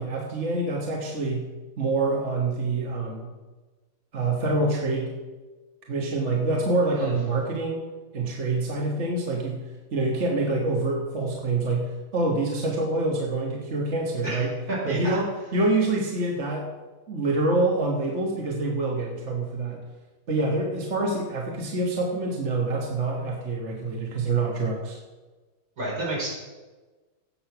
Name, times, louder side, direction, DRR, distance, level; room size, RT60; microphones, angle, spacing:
voice 1, 0.0-1.5 1.8-3.3 4.1-5.1 5.9-7.8 8.1-14.5 14.8-15.3 15.5-16.7 17.1-19.8 20.3-25.0, right 2 dB, 50° right, 0 dB, 1.6 m, -26 dB
voice 2, 14.2-15.2 25.8-26.3, right 2 dB, 75° right, -5 dB, 5.1 m, -30 dB
16.5 x 6.4 x 5.9 m, 1.2 s
omnidirectional pair, 1.6 m